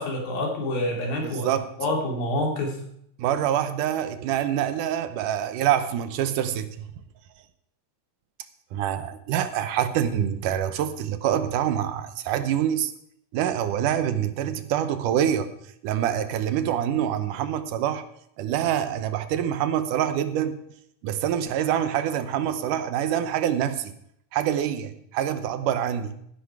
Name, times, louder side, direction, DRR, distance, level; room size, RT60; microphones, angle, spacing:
voice 1, 0.0-1.5 1.8-2.8, left 1 dB, 85° left, 1 dB, 4.5 m, -27 dB
voice 2, 1.2-1.7 3.2-6.9 8.7-12.9 13.3-15.5 15.8-18.0 18.4-20.6 21.0-23.9 24.3-26.2, right 10 dB, 75° right, 11 dB, 2.3 m, -26 dB
16.0 x 10.5 x 4.7 m, 0.71 s
omnidirectional pair, 4.0 m